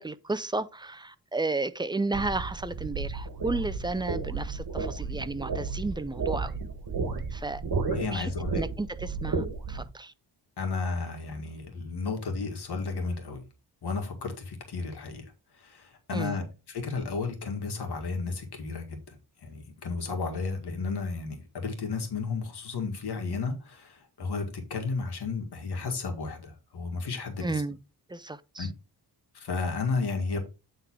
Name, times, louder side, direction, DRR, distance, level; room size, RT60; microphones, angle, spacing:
voice 1, 0.0-6.6 7.3-7.6 8.1-10.1 16.1-16.4 27.4-27.8 28.1-28.7, right 3 dB, 10° right, 0.4 m, -33 dB
sound 1, 2.1-9.8, right 4 dB, 60° right, 1.6 m, -33 dB
voice 2, 7.9-8.5 10.6-13.4 13.8-15.3 15.6-19.0 19.4-27.5 28.6-28.7 29.3-30.4, left 4 dB, 75° left, 1.9 m, -33 dB
8.7 x 3.8 x 4.5 m
wide cardioid pair, 95°, 40 cm